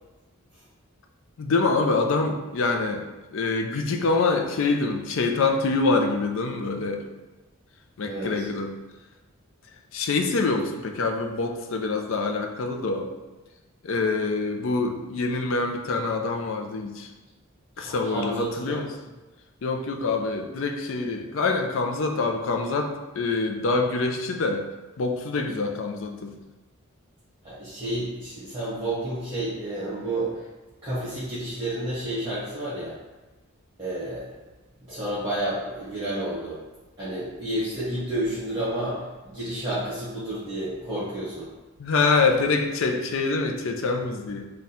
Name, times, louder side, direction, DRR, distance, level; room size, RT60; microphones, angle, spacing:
voice 1, 1.4-7.0 8.0-8.7 9.9-13.1 13.8-17.1 17.8-18.9 19.6-24.6 25.0-26.3 41.8-44.5, left 3 dB, 60° left, 4 dB, 0.4 m, -25 dB
voice 2, 8.0-8.4 17.7-18.8 25.4-25.5 27.4-30.5 30.8-33.0 33.8-34.4 34.9-36.6 37.0-41.5, right 1 dB, 20° right, -12 dB, 1.3 m, -30 dB
3.7 x 2.3 x 4.1 m, 1.2 s
head